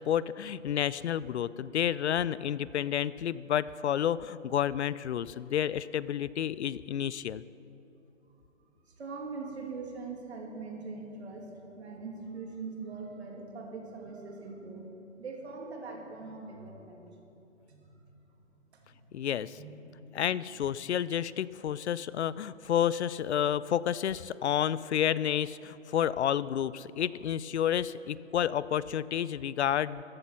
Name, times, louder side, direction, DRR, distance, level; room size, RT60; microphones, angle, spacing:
voice 1, 0.0-7.4 19.1-19.6 20.1-30.0, left 10 dB, 60° left, 19 dB, 0.5 m, -30 dB
voice 2, 8.9-17.2 17.7-17.9 18.7-19.1 19.5-20.4, right 4 dB, 55° right, 1 dB, 2.7 m, -42 dB
14.5 x 11.5 x 5.8 m, 3.0 s
hypercardioid pair, 155°, 38 cm